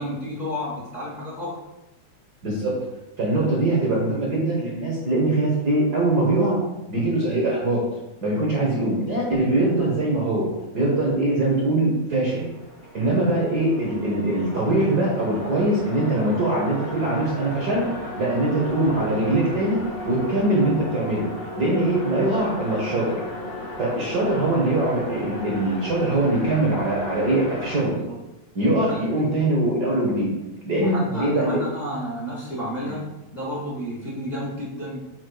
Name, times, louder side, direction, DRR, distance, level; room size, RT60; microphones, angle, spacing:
voice 1, 0.0-1.5 8.6-8.7 24.3-24.4 28.0-28.1 28.8-29.0 30.7-33.1 33.3-35.0, equal, 90° left, -6 dB, 0.3 m, -31 dB
voice 2, 2.4-2.8 3.2-6.6 6.9-7.8 8.2-10.5 10.7-12.5 12.9-17.8 18.2-19.8 20.0-21.2 21.6-23.2 23.8-28.0 28.5-30.3 30.7-31.6 32.9-33.0, right 2 dB, 50° right, -4 dB, 1.2 m, -22 dB
sound 1, 12.2-27.8, left 1 dB, 50° left, 2.4 m, -35 dB
8.4 x 6.7 x 2.3 m, 0.97 s
omnidirectional pair, 3.5 m